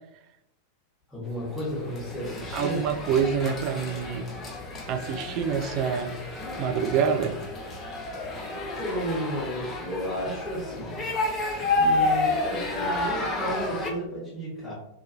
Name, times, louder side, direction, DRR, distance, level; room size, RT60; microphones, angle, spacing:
voice 1, 1.1-2.8 8.8-11.2 11.7-14.7, equal, 10° left, -9 dB, 1.3 m, -33 dB
sound 1, 1.6-13.9, left 2 dB, 25° left, 0.6 m, -30 dB
voice 2, 2.5-4.3 4.9-6.1 6.6-7.4, right 7 dB, 40° right, 5 dB, 0.3 m, -26 dB
2.8 x 2.3 x 2.7 m, 0.84 s
figure-of-eight pair, 90°, 0 cm